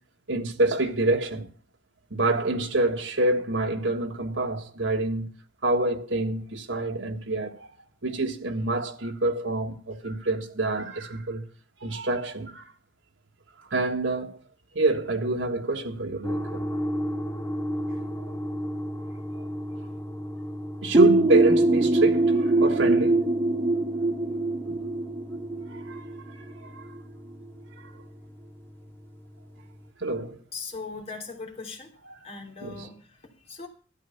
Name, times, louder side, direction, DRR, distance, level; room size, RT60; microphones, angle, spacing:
voice 1, 0.3-1.5 2.1-5.3 5.6-7.7 8.0-11.4 11.8-12.6 13.7-14.4 14.7-16.7 20.8-23.3 24.7-24.8 25.7-26.0 26.6-26.8 30.0-30.4 32.1-32.2 32.6-32.9, right 2 dB, 85° right, 1.6 m, -27 dB
sound 1, 16.2-29.9, equal, 10° left, 1.1 m, -36 dB
sound 2, 20.9-26.5, right 2 dB, 30° right, 0.9 m, -22 dB
voice 2, 30.5-31.9 32.2-33.7, left 4 dB, 35° left, 3.3 m, -39 dB
12.5 x 10.0 x 5.6 m
head